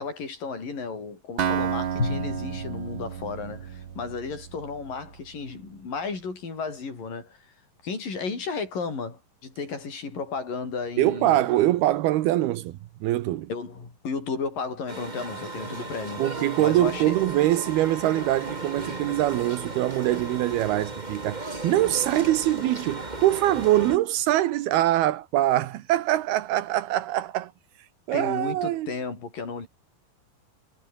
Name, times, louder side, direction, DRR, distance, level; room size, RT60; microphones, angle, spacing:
voice 1, 0.0-7.4 7.8-11.4 13.5-16.2 16.6-17.2 28.1-29.7, left 4 dB, 60° left, 8.5 m, -33 dB
Acoustic guitar, 1.4-5.2, right 8 dB, 60° right, 1.2 m, -31 dB
Drum, 2.0-4.4, left 4 dB, 30° left, 3.0 m, -34 dB
voice 2, 11.0-13.5 16.2-27.5 28.1-28.9, right 14 dB, 80° right, 3.0 m, -23 dB
sound 1, 14.9-24.0, right 2 dB, 15° right, 1.6 m, -35 dB
omnidirectional pair, 4.4 m